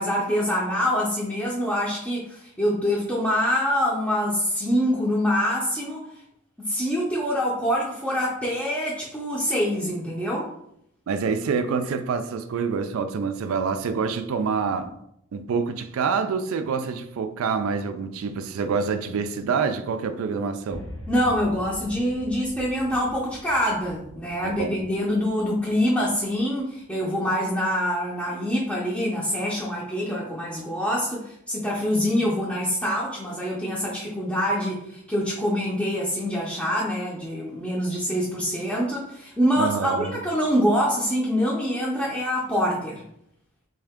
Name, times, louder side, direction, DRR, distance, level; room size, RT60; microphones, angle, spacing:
voice 1, 0.0-6.1 6.6-10.5 21.1-43.0, equal, 5° left, 0.5 m, -25 dB
voice 2, 11.1-14.9 15.3-20.8 24.4-24.8 39.6-40.2, right 5 dB, 90° right, 0.3 m, -26 dB
sound 1, 20.7-26.8, equal, 80° left, 0.8 m, -43 dB
3.5 x 2.8 x 3.5 m
head